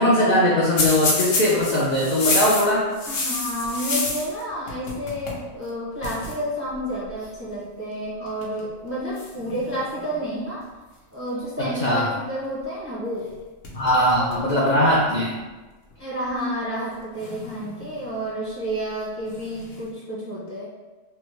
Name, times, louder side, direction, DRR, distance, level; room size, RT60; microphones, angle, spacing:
voice 1, 0.0-2.9 11.6-12.1 13.7-15.3, left 1 dB, 65° left, -5 dB, 0.4 m, -20 dB
sound 1, 0.8-4.4 4.7-5.4 5.7-5.8 6.0-6.3 7.2-7.5 8.3-8.6 9.2-10.2 13.2-13.3 13.6-14.5 14.9-15.0 15.9-16.0 17.1-18.0 19.3-19.8, left 2 dB, 80° left, 1.0 m, -28 dB
voice 2, 3.1-10.6 11.1-13.3 13.8-14.6 16.0-20.7, equal, 20° right, -8 dB, 0.4 m, -30 dB
3.3 x 2.1 x 3.0 m, 1.2 s
omnidirectional pair, 1.3 m